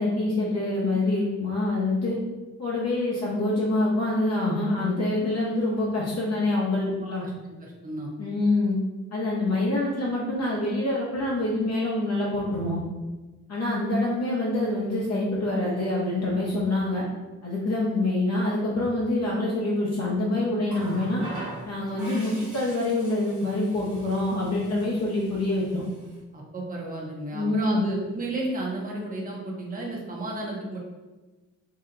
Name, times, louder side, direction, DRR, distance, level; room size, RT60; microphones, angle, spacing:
voice 1, 0.0-2.2 2.6-7.3 8.2-8.8 9.1-12.8 13.5-17.0 17.4-21.2 21.7-25.8 27.3-27.9, left 2 dB, 55° left, -5 dB, 0.6 m, -26 dB
voice 2, 7.6-8.1 26.3-30.8, right 2 dB, 25° right, -2 dB, 0.7 m, -33 dB
Water tap faucet, 20.6-26.2 27.4-27.6, right 1 dB, 65° right, 1.2 m, -43 dB
2.7 x 2.1 x 3.7 m, 1.2 s
wide cardioid pair, 110°, 31 cm